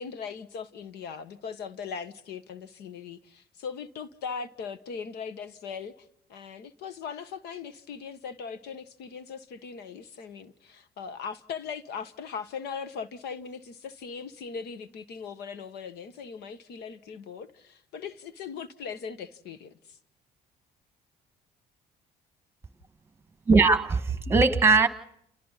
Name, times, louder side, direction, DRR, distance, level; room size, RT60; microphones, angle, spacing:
voice 1, 0.0-20.0, left 6 dB, 75° left, 1.4 m, -39 dB
voice 2, 23.5-24.9, right 4 dB, 15° right, 1.7 m, -20 dB
30.0 x 28.5 x 4.1 m
cardioid pair, 110°, 17 cm